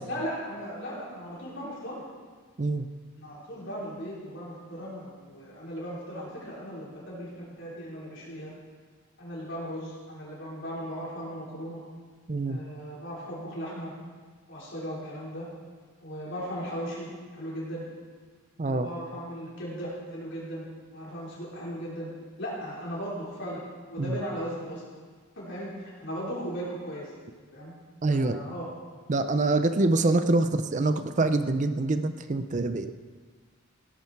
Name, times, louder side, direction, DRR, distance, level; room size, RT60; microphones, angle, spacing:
voice 1, 0.0-2.0 3.2-8.5 9.2-11.8 12.5-13.9 14.5-15.5 16.0-17.9 18.6-20.7 20.9-22.1 22.4-23.6 23.9-25.0 25.4-27.1 27.5-27.7 28.1-28.7, equal, 55° left, -6 dB, 4.7 m, -37 dB
voice 2, 12.3-12.6 18.6-18.9 24.0-24.2 28.0-28.4 29.1-32.9, right 2 dB, 35° right, 10 dB, 0.5 m, -25 dB
16.5 x 10.0 x 4.6 m, 1.5 s
head